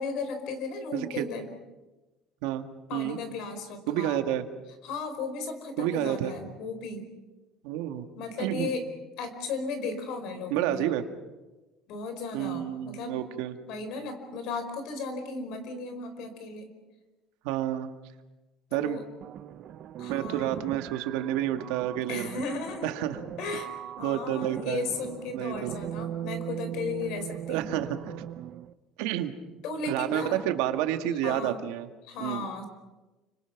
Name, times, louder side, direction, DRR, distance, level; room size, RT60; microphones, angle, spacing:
voice 1, 0.0-1.5 2.9-4.2 4.8-7.1 8.2-8.8 9.2-10.9 11.9-13.2 13.7-16.7 18.7-19.0 20.0-20.6 22.1-22.9 23.4-23.7 24.0-27.6 29.6-30.4 31.2-31.6 32.0-32.6, left 4 dB, 55° left, 8 dB, 4.9 m, -35 dB
voice 2, 0.9-1.3 2.4-2.6 2.9-3.2 3.9-4.4 5.8-6.3 7.6-8.0 8.4-8.7 10.5-11.0 12.3-13.6 17.4-17.9 18.7-19.0 20.1-22.4 22.8-23.2 24.0-24.9 25.3-25.8 27.5-28.1 29.0-29.3 29.9-31.9 32.2-32.5, right 12 dB, 80° right, 7 dB, 2.0 m, -29 dB
sound 1, 19.2-28.7, right 10 dB, 40° right, 0.8 m, -39 dB
29.5 x 25.5 x 6.1 m, 1.2 s
cardioid pair, 175°, 0 cm